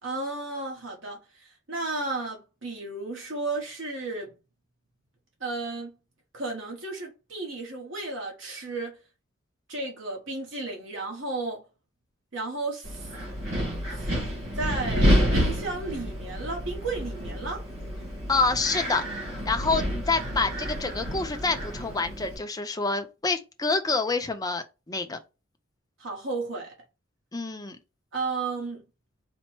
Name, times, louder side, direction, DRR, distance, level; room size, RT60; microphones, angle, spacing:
voice 1, 0.0-4.3 5.4-5.9 6.3-9.0 9.7-11.6 12.3-13.1 13.9-17.7 26.0-26.7 28.1-28.8, right 3 dB, 70° right, 1.2 m, -33 dB
Wind, 12.8-22.4, equal, 85° right, 1.7 m, -29 dB
voice 2, 18.3-19.2 19.4-25.2 27.3-27.8, left 3 dB, 20° left, 0.5 m, -27 dB
4.2 x 2.0 x 4.4 m
head